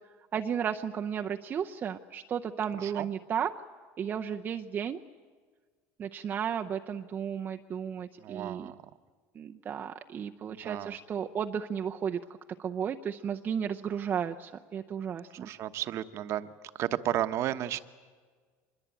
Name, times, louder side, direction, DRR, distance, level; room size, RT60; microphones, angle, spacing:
voice 1, 0.3-3.5 4.0-5.0 6.0-8.7 9.4-12.2 12.6-15.5, right 8 dB, 30° right, 5 dB, 0.6 m, -34 dB
voice 2, 2.7-3.1 8.2-8.8 10.5-11.0 15.4-16.5 16.7-17.8, right 12 dB, 45° right, 11 dB, 1.0 m, -33 dB
24.5 x 21.0 x 9.1 m, 1.5 s
cardioid pair, 140°, 6 cm